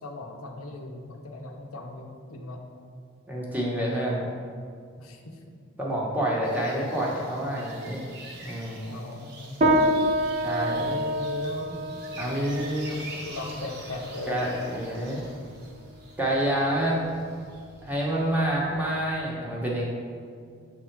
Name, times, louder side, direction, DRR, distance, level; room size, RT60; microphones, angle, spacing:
voice 1, 0.0-2.6 5.0-5.6 8.8-9.6 10.7-12.3 13.1-14.5, left 2 dB, 90° left, 2 dB, 0.7 m, -38 dB
voice 2, 3.3-4.3 5.8-8.1 8.4-8.9 10.4-10.9 12.2-13.0 14.3-15.2 16.2-17.0 17.8-19.8, right 1 dB, 10° right, -4 dB, 0.9 m, -28 dB
sound 1, 6.4-18.4, right 2 dB, 50° right, 0.9 m, -46 dB
sound 2, 9.6-19.3, equal, 30° right, 0.6 m, -29 dB
6.7 x 3.6 x 4.5 m, 2.2 s
head